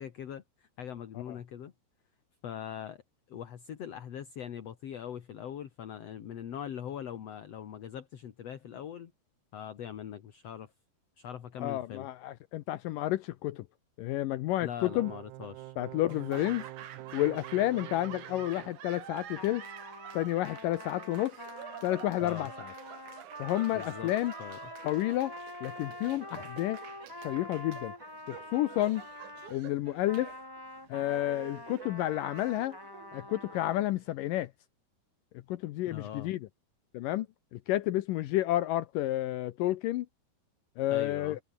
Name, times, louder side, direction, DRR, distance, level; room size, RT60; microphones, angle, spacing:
voice 1, 0.0-1.7 2.4-3.0 3.3-9.1 9.5-10.7 11.2-12.1 14.6-15.7 22.2-22.5 23.7-24.1 24.4-24.6 35.9-36.3 40.9-41.4, left 9 dB, 50° left, 2.1 m, -41 dB
voice 2, 11.6-13.7 14.0-15.1 15.8-16.6 17.1-19.6 20.1-21.4 21.8-22.7 23.4-24.3 24.8-25.3 25.6-26.8 27.2-27.9 28.3-29.0 29.5-30.3 30.9-32.8 33.1-34.5 35.5-36.4 36.9-37.3 37.5-40.1 40.8-41.4, left 15 dB, 80° left, 2.0 m, -30 dB
sound 1, 14.9-18.8, right 17 dB, 85° right, 3.0 m, -46 dB
Laughter / Applause, 16.1-34.2, right 10 dB, 55° right, 2.8 m, -48 dB
Trumpet, 19.3-29.6 30.1-33.8, left 1 dB, 10° left, 1.5 m, -46 dB
omnidirectional pair, 4.8 m